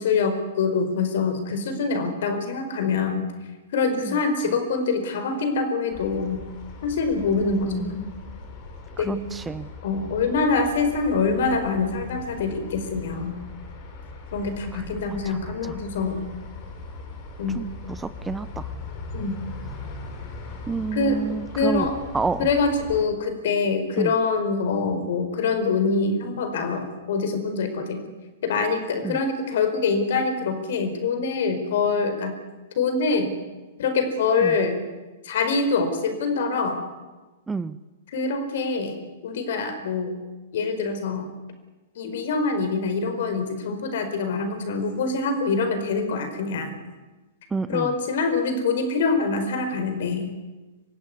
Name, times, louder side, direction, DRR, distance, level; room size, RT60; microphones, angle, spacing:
voice 1, 0.0-3.2 3.7-6.4 6.8-8.0 9.0-9.2 9.8-13.3 14.3-16.3 17.4-17.6 19.1-19.4 20.9-21.2 21.5-22.0 22.4-28.0 28.4-32.4 32.7-33.3 33.8-34.8 35.2-36.8 38.1-39.0 39.2-40.1 40.5-41.3 41.9-46.7 47.7-50.3, left 4 dB, 60° left, 8 dB, 4.8 m, -25 dB
sound 1, 5.9-23.1, left 3 dB, 45° left, 7.0 m, -39 dB
voice 2, 7.4-8.0 9.0-9.7 14.7-14.8 15.3-15.8 17.5-18.7 20.7-21.9 22.1-22.5 24.0-24.1 29.0-29.2 34.4-34.6 37.5-37.8 47.5-47.9, right 4 dB, 10° right, 15 dB, 0.8 m, -29 dB
24.5 x 16.0 x 9.7 m, 1.2 s
figure-of-eight pair, 105°, 0 cm